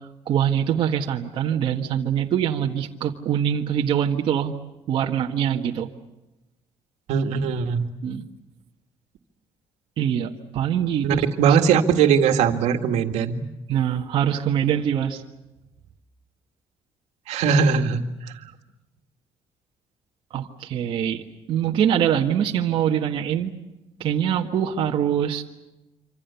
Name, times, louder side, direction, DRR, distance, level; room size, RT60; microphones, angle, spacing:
voice 1, 0.3-4.5 4.9-5.9 8.0-8.2 10.0-11.2 13.7-15.2 20.3-21.2 21.5-23.5 24.0-25.5, right 9 dB, 50° right, 1 dB, 1.6 m, -23 dB
voice 2, 7.1-7.9 11.0-13.4 17.3-18.0, right 6 dB, 75° right, 5 dB, 2.0 m, -20 dB
26.5 x 26.0 x 7.1 m, 0.97 s
cardioid pair, 180°, 11 cm